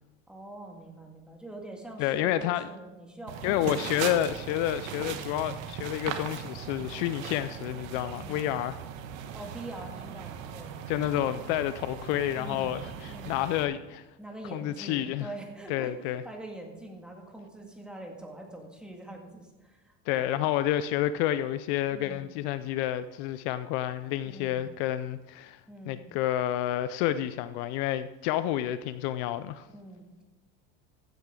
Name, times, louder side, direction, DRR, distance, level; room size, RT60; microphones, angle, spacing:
voice 1, 0.3-4.2 8.1-8.5 9.3-10.7 12.4-13.5 14.2-20.6 21.9-22.3 24.2-24.6 25.7-26.0 29.7-30.2, right 2 dB, ahead, 1 dB, 1.8 m, -44 dB
voice 2, 2.0-2.7 3.4-8.8 10.9-14.0 14.5-15.3 15.7-16.2 20.1-25.6 25.9-29.7, left 12 dB, 60° left, 13 dB, 0.5 m, -29 dB
sound 1, 3.3-13.7, right 8 dB, 85° right, 1.4 m, -39 dB
15.0 x 9.2 x 3.7 m, 1.1 s
supercardioid pair, 140°, 39 cm